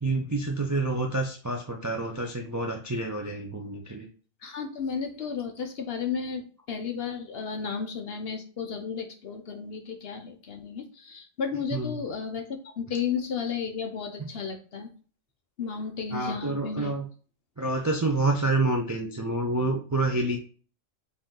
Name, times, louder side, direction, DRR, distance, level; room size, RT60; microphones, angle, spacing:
voice 1, 0.0-4.1 11.7-12.0 14.2-14.3 16.1-17.0 17.6-20.4, right 2 dB, 25° right, 1 dB, 0.4 m, -28 dB
voice 2, 4.4-14.9 15.6-16.9, left 6 dB, 55° left, 4 dB, 0.8 m, -33 dB
5.2 x 2.7 x 3.7 m, 0.39 s
omnidirectional pair, 1.3 m